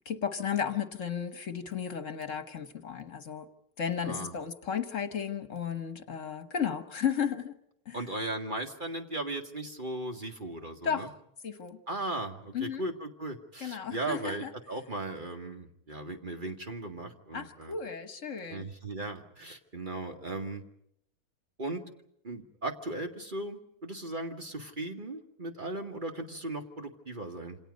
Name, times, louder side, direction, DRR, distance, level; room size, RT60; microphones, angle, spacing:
voice 1, 0.0-3.5 3.8-7.5 7.8-8.0 10.8-11.1 11.4-11.8 12.5-12.8 13.6-14.5 17.3-18.7, left 7 dB, 55° left, 9 dB, 1.5 m, -34 dB
voice 2, 4.0-4.4 7.9-11.1 11.9-17.8 18.5-20.6 21.6-21.8 22.2-27.6, right 2 dB, 35° right, 3 dB, 2.1 m, -37 dB
28.0 x 26.5 x 5.3 m, 0.75 s
omnidirectional pair, 1.6 m